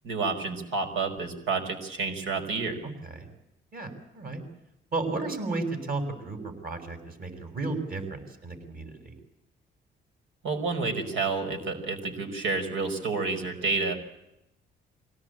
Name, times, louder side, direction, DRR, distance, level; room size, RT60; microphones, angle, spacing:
voice 1, 0.0-2.8 10.4-13.9, right 4 dB, 80° right, 6 dB, 5.1 m, -29 dB
voice 2, 3.7-4.4 4.9-9.1, right 3 dB, 50° right, 7 dB, 6.7 m, -33 dB
24.5 x 18.0 x 8.7 m, 0.87 s
cardioid pair, 90°, 20 cm